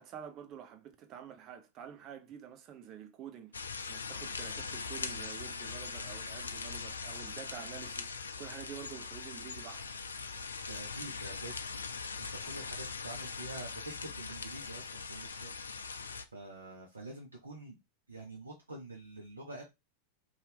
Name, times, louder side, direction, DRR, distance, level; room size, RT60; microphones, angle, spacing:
voice 1, 0.0-9.9, right 9 dB, 35° right, 0.6 m, -48 dB
sound 1, 3.5-16.3, left 5 dB, 75° left, 0.3 m, -41 dB
voice 2, 10.7-11.7 12.2-15.5 16.3-17.8 18.1-19.6, right 2 dB, 75° right, 0.6 m, -47 dB
2.8 x 2.3 x 3.4 m
figure-of-eight pair, 90°, 0 cm